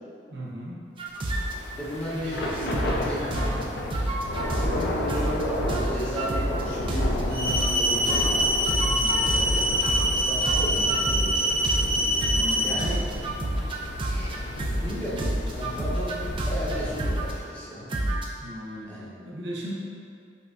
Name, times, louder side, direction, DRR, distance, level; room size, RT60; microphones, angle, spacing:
voice 1, 0.3-0.8 2.1-3.7 8.8-9.4 12.3-13.0 18.4-19.7, equal, 90° right, -4 dB, 0.7 m, -38 dB
sound 1, 1.0-1.5 2.0-3.0 3.3-3.6 3.9-4.8 5.1-5.4 5.7-7.8 8.1-12.5 12.8-14.9 15.2-17.3 17.9-18.5, right 1 dB, 30° right, 0.3 m, -29 dB
Thunder / Rain, 1.2-17.5, left 1 dB, 70° left, 0.4 m, -32 dB
voice 2, 1.7-3.5 4.5-8.2 9.2-9.6 10.1-11.6 12.6-13.1 14.1-14.3 14.7-16.2 16.4-17.9 18.9-19.1, equal, 10° left, -10 dB, 0.9 m, -34 dB
sound 2, 7.3-12.7, equal, 55° right, 1.3 m, -25 dB
5.3 x 2.6 x 2.3 m, 2.4 s
head